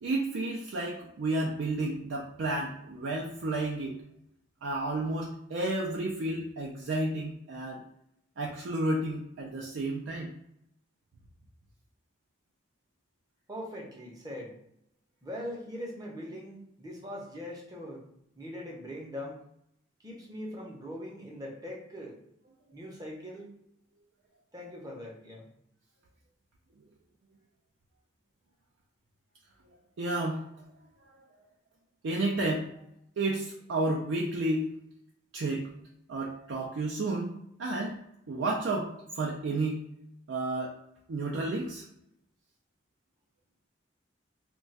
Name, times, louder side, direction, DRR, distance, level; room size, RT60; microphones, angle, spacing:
voice 1, 0.0-4.0 4.6-7.8 8.4-10.3 30.0-30.4 32.0-32.7 33.2-34.7 35.3-35.7 36.1-38.0 38.3-39.9 40.3-40.8 41.1-41.8, right 2 dB, 80° right, -2 dB, 0.4 m, -31 dB
voice 2, 13.5-14.6 15.2-18.0 18.3-19.4 20.0-22.2 22.7-23.5 24.5-25.5, equal, 20° right, -1 dB, 0.6 m, -41 dB
2.3 x 2.2 x 3.9 m, 0.78 s
head